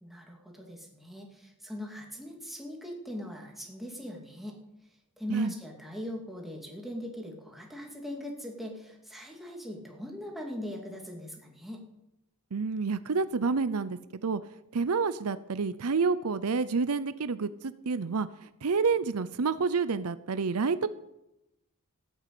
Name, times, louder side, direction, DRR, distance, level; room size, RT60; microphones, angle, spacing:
voice 1, 0.0-4.6 5.2-11.8, left 1 dB, ahead, 0 dB, 2.7 m, -40 dB
voice 2, 12.5-14.4 14.7-18.3 18.6-20.9, right 4 dB, 75° right, 14 dB, 0.6 m, -28 dB
14.5 x 9.1 x 8.4 m, 0.89 s
head